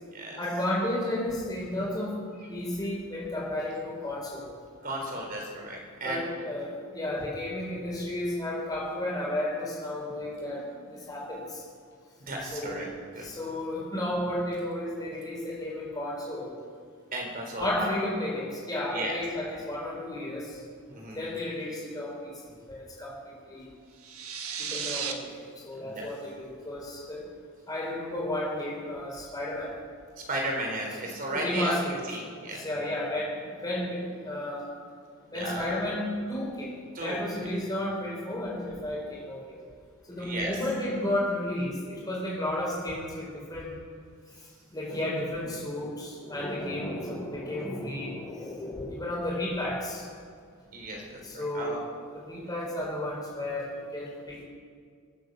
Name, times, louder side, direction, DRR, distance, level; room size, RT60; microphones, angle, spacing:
voice 1, 0.4-2.1 2.5-4.5 6.0-11.6 12.5-12.8 13.2-16.6 17.6-20.6 21.1-23.6 24.6-27.2 27.7-29.7 31.3-32.0 32.6-34.7 35.3-36.7 37.0-39.6 40.1-43.7 44.7-50.0 51.2-51.8 52.1-54.4, left 1 dB, 20° left, -4 dB, 4.7 m, -33 dB
voice 2, 4.8-6.2 12.2-12.9 13.1-13.3 17.1-17.9 18.9-19.2 20.9-21.2 25.7-26.1 30.3-32.9 35.2-35.8 36.9-37.2 40.2-40.6 47.6-47.7 50.7-51.8, right 1 dB, 40° right, 0 dB, 3.7 m, -35 dB
sound 1, 24.0-25.1, right 7 dB, 85° right, 1.5 m, -34 dB
22.5 x 9.2 x 6.7 m, 2.1 s
head